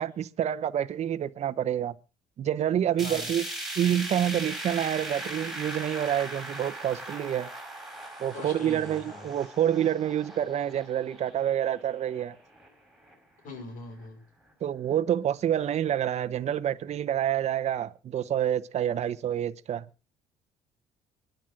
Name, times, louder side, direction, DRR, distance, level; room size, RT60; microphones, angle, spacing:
voice 1, 0.0-1.9 2.4-3.5 3.8-7.5 8.2-12.3 14.6-19.8, right 10 dB, 50° right, 0.8 m, -28 dB
voice 2, 3.0-3.3 8.3-9.3 13.4-14.2, left 2 dB, 70° left, 5.7 m, -42 dB
sound 1, 3.0-13.1 13.5-13.6 14.0-14.1 15.0-15.1, right 1 dB, ahead, 4.7 m, -39 dB
24.5 x 10.5 x 3.8 m
cardioid pair, 95°, 15 cm